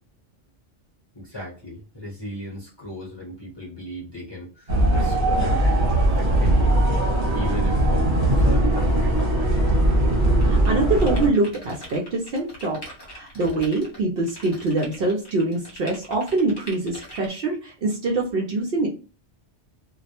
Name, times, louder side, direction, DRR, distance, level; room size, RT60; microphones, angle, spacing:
voice 1, 1.1-5.6 6.0-6.8 7.3-9.6, left 1 dB, 25° left, -5 dB, 0.8 m, -37 dB
sound 1, 4.7-11.3, right 1 dB, 45° right, 1.1 m, -20 dB
sound 2, 10.4-17.3, equal, 50° left, 1.0 m, -42 dB
voice 2, 10.4-12.8 13.0-18.9, right 2 dB, 60° right, 0 dB, 0.7 m, -24 dB
2.2 x 2.0 x 2.8 m, 0.35 s
omnidirectional pair, 1.2 m